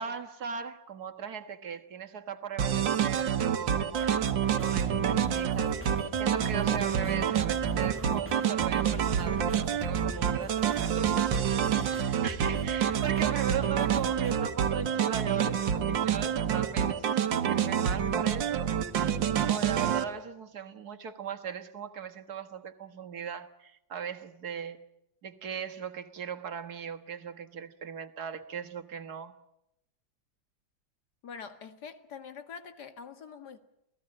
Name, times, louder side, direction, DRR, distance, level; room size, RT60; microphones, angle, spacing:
voice 1, 0.0-5.9 6.2-18.7 19.4-24.9 25.2-29.3, right 7 dB, 55° right, 2.0 m, -38 dB
sound 1, 2.6-20.0, right 8 dB, 75° right, 1.9 m, -28 dB
sound 2, 3.9-14.3, equal, 5° right, 2.0 m, -43 dB
voice 2, 31.2-33.6, left 6 dB, 60° left, 2.3 m, -45 dB
28.0 x 18.0 x 8.7 m
omnidirectional pair, 2.0 m